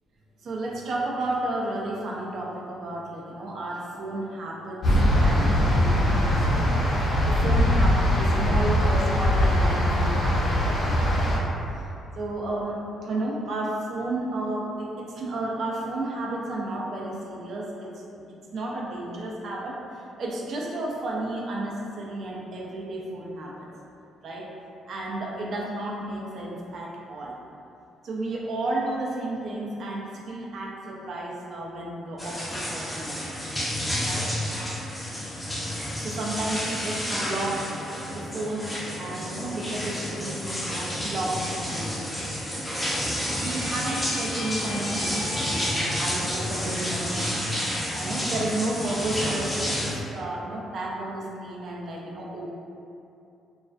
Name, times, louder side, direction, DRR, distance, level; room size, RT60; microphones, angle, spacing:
voice 1, 0.4-4.8 5.2-6.8 7.3-11.2 11.7-11.8 12.1-17.9 18.3-23.7 24.2-24.5 24.9-27.3 28.0-33.3 34.0-34.8 36.0-37.7 38.1-41.9 43.3-47.4 47.9-52.5, right 2 dB, 60° right, -3 dB, 0.4 m, -32 dB
sound 1, 4.8-11.4, equal, 50° left, 0.7 m, -21 dB
sound 2, 32.2-49.9, equal, 10° left, 0.5 m, -30 dB
sound 3, 43.1-46.0, left 3 dB, 80° left, 0.3 m, -38 dB
2.3 x 2.2 x 2.4 m, 2.7 s
cardioid pair, 85°, 0 cm